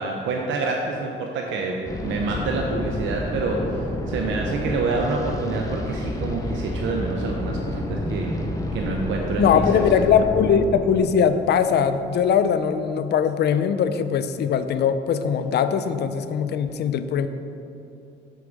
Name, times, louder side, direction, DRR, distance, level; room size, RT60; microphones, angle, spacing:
voice 1, 0.0-8.4 8.7-10.0, right 3 dB, 75° right, 1 dB, 0.6 m, -27 dB
sound 1, 1.9-12.6, left 1 dB, 15° left, 0.7 m, -30 dB
voice 2, 9.4-17.3, left 7 dB, 60° left, 11 dB, 0.4 m, -21 dB
6.0 x 4.6 x 5.1 m, 2.8 s
cardioid pair, 90°, 20 cm